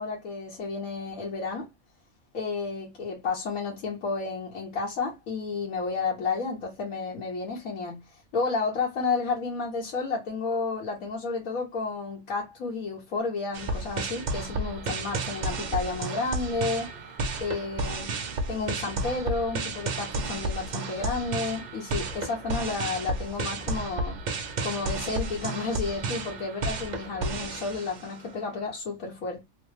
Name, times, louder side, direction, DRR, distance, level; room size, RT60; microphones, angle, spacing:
voice 1, 0.0-1.7 2.3-8.0 8.3-16.9 17.4-18.1 18.5-24.2 24.6-29.4, left 4 dB, 80° left, 1.3 m, -31 dB
sound 1, 13.5-28.3, right 3 dB, 55° right, 0.5 m, -32 dB
3.1 x 2.1 x 3.1 m
omnidirectional pair, 1.4 m